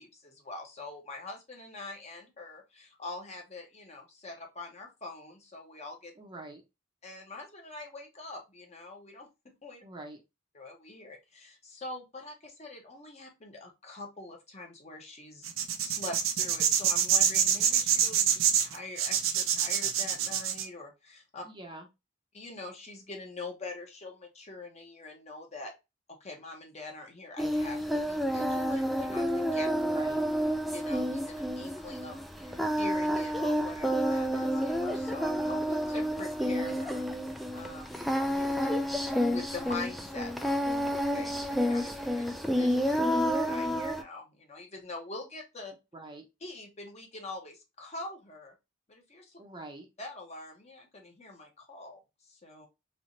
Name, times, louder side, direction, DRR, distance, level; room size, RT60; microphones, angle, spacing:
voice 1, 0.0-6.1 7.0-9.8 10.5-15.5 15.8-21.4 22.3-25.7 26.1-29.7 30.7-37.0 37.5-45.8 46.4-48.5 48.9-49.4 50.0-52.7, left 2 dB, 35° left, 2 dB, 0.9 m, -44 dB
voice 2, 6.2-6.6 9.8-10.2 21.4-21.9 29.7-30.3 45.9-46.2 49.4-49.9, right 2 dB, 25° right, 2 dB, 0.7 m, -45 dB
sound 1, 15.4-20.7, right 8 dB, 85° right, 0.5 m, -26 dB
Singing, 27.4-44.0, equal, ahead, 0.3 m, -30 dB
3.3 x 3.0 x 2.6 m, 0.24 s
head